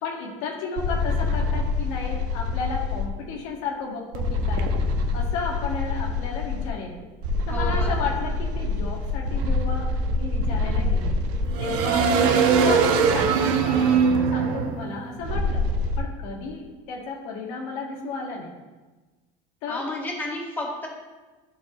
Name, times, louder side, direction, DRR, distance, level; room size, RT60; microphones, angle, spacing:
voice 1, 0.0-4.7 5.1-6.9 7.5-11.2 11.6-14.0 14.3-15.6 16.0-18.5 19.6-19.9, left 4 dB, 85° left, -1 dB, 1.8 m, -33 dB
sound 1, 0.8-3.1 4.1-6.7 7.2-16.0, right 1 dB, 80° right, 1.1 m, -23 dB
voice 2, 7.5-7.9 19.7-20.9, left 2 dB, 10° left, -3 dB, 1.8 m, -31 dB
13.5 x 4.8 x 3.1 m, 1.2 s
cardioid pair, 155°, 17 cm